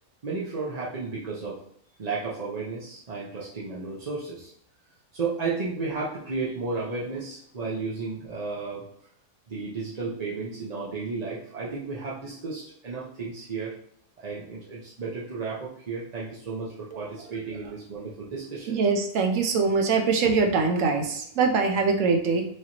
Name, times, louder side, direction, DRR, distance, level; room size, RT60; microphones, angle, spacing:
voice 1, 0.2-1.6 2.0-4.5 5.1-8.8 9.5-13.7 14.2-18.8, right 4 dB, 40° right, -7 dB, 0.6 m, -33 dB
voice 2, 18.7-22.5, right 4 dB, 65° right, 5 dB, 0.9 m, -23 dB
4.8 x 3.0 x 2.8 m, 0.67 s
omnidirectional pair, 1.6 m